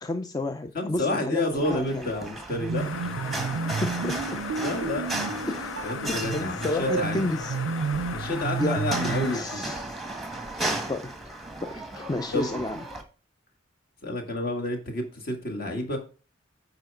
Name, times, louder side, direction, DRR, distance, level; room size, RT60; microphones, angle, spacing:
voice 1, 0.0-1.4 1.7-2.1 3.2-3.5 3.8-4.4 5.5-5.7 6.1-7.6 8.6-8.8 9.3-10.0 10.9-11.1 11.6-12.8, left 2 dB, 20° left, 0.4 m, -31 dB
voice 2, 0.7-2.9 4.5-5.4 5.8-7.3 8.1-9.6 12.3-12.6 14.0-16.0, left 2 dB, 50° left, 2.0 m, -30 dB
sound 1, 1.5-13.0, right 1 dB, ahead, 1.2 m, -36 dB
sound 2, 2.5-9.4, right 5 dB, 80° right, 0.4 m, -31 dB
sound 3, 2.7-9.4, left 6 dB, 75° left, 0.6 m, -37 dB
9.1 x 4.8 x 4.8 m
head